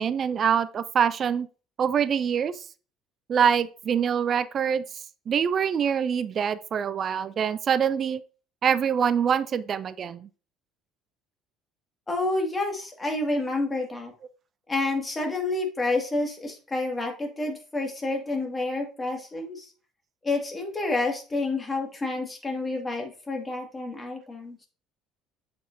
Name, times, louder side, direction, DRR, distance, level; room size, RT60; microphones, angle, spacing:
voice 1, 0.0-1.5 1.8-2.6 3.3-4.8 5.3-8.2 8.6-10.3, right 7 dB, 45° right, 0.3 m, -24 dB
voice 2, 12.1-14.1 14.7-19.7 20.2-24.6, left 2 dB, 20° left, 2.1 m, -29 dB
7.6 x 5.2 x 2.7 m
hypercardioid pair, 60°, 0 cm